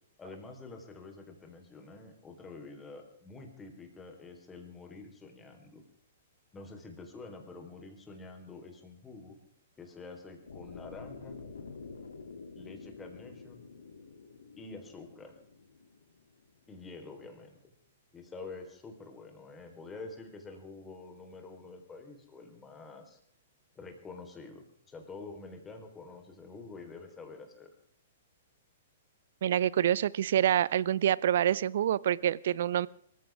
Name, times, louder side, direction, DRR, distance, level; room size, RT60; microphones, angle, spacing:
voice 1, 0.2-5.8 6.5-9.4 9.8-11.4 12.6-13.7 14.6-15.4 16.7-17.6 18.1-23.2 23.8-27.7, left 3 dB, 15° left, 4 dB, 3.9 m, -47 dB
sound 1, 10.5-16.6, left 4 dB, 75° left, 2.6 m, -48 dB
voice 2, 29.4-32.9, right 10 dB, 60° right, 23 dB, 0.6 m, -26 dB
26.0 x 15.0 x 3.6 m, 0.64 s
figure-of-eight pair, 110°, 0 cm